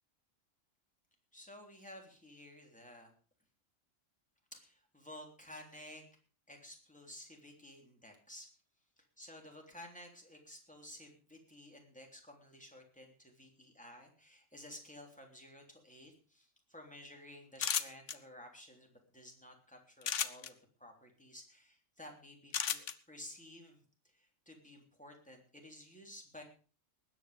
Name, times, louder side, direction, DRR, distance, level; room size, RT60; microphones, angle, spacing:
voice 1, 1.3-3.1 4.5-6.0 6.5-8.5 9.2-23.8 24.1-26.4, left 1 dB, 5° left, 2 dB, 3.3 m, -54 dB
sound 1, 17.6-18.1 20.0-20.5 22.5-22.9, left 8 dB, 70° left, 1.2 m, -33 dB
20.0 x 9.1 x 5.1 m, 0.39 s
omnidirectional pair, 1.3 m